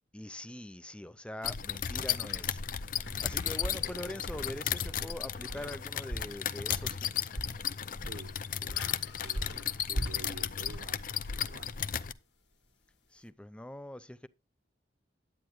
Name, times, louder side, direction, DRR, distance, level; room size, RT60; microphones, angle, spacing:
voice 1, 0.1-7.3 13.1-14.3, left 1 dB, 5° left, 0.5 m, -43 dB
sound 1, 1.4-12.1, left 9 dB, 50° left, 0.6 m, -35 dB
sound 2, 2.2-12.1, equal, 85° left, 2.0 m, -42 dB
sound 3, 3.3-12.0, left 2 dB, 70° left, 1.8 m, -58 dB
voice 2, 3.5-3.9 8.0-8.8 9.2-11.1 11.4-11.7, right 3 dB, 70° right, 1.0 m, -50 dB
10.5 x 8.9 x 3.0 m
head